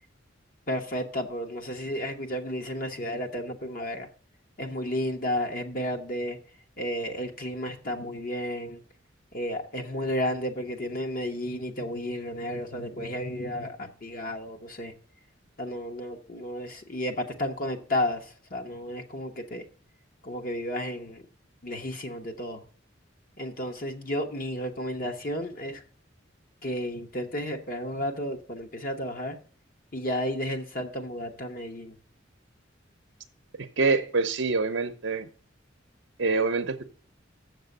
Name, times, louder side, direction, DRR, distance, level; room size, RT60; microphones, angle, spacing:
voice 1, 0.7-4.1 4.6-6.4 6.8-8.8 9.3-14.9 15.6-19.6 20.2-21.2 21.6-22.6 23.4-25.8 26.6-29.4 29.9-32.0, left 1 dB, 45° left, 1.1 m, -32 dB
voice 2, 33.6-35.3 36.2-36.8, right 3 dB, 65° right, 0.7 m, -26 dB
7.4 x 6.6 x 6.7 m
head